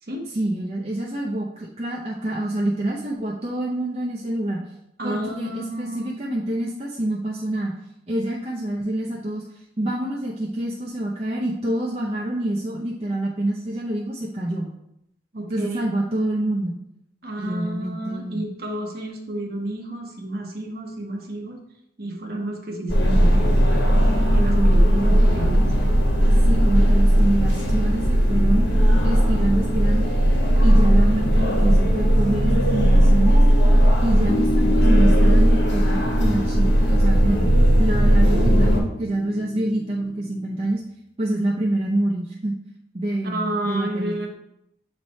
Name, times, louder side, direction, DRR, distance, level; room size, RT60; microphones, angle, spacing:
voice 1, 0.3-4.6 5.0-7.7 8.1-9.4 9.8-14.7 15.5-16.8 17.4-18.4 24.5-25.5 26.5-28.7 29.0-30.1 30.6-33.4 34.0-37.5 37.8-40.8 41.2-42.5 42.9-44.1, right 1 dB, 35° right, -4 dB, 0.7 m, -26 dB
voice 2, 5.0-6.2 15.3-15.8 17.2-21.6 22.0-23.6 24.3-25.7 34.1-34.5 39.4-39.5 43.2-44.3, right 1 dB, 55° right, 1 dB, 1.0 m, -31 dB
sound 1, 22.9-38.8, equal, 80° left, 1.3 m, -17 dB
sound 2, 34.3-40.7, left 2 dB, 45° left, 0.4 m, -31 dB
7.3 x 3.3 x 4.2 m, 0.79 s
head